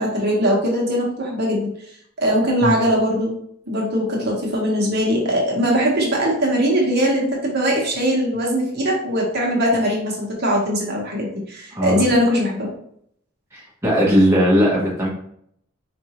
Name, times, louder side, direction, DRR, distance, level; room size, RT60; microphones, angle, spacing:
voice 1, 0.0-1.7 2.2-3.3 3.7-12.7, equal, 50° right, -2 dB, 1.0 m, -20 dB
voice 2, 11.7-12.1 13.5-15.1, equal, 15° right, -5 dB, 0.9 m, -18 dB
4.7 x 2.6 x 2.9 m, 0.68 s
head